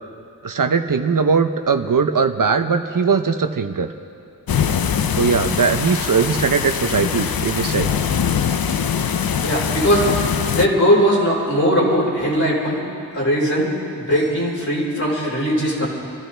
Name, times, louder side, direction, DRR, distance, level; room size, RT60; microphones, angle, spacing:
voice 1, 0.4-3.9 5.1-7.9, right 5 dB, 65° right, 7 dB, 0.8 m, -19 dB
sound 1, 4.5-10.7, left 7 dB, 75° left, 0.6 m, -22 dB
voice 2, 9.4-12.8 13.1-13.7 13.9-15.9, equal, 55° left, -5 dB, 4.7 m, -19 dB
27.5 x 14.0 x 3.4 m, 2.5 s
wide cardioid pair, 65°, 35 cm